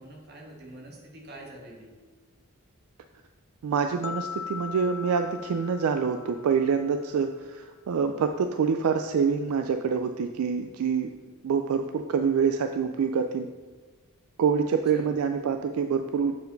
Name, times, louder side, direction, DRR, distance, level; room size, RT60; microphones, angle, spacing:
voice 1, 0.0-1.9 14.9-15.1, right 1 dB, 45° right, -1 dB, 1.3 m, -45 dB
voice 2, 3.6-11.1 11.4-13.5 14.4-16.4, right 6 dB, 75° right, 7 dB, 0.3 m, -26 dB
sound 1, 4.0-7.1, left 7 dB, 85° left, 0.6 m, -40 dB
7.3 x 4.6 x 3.9 m, 1.4 s
head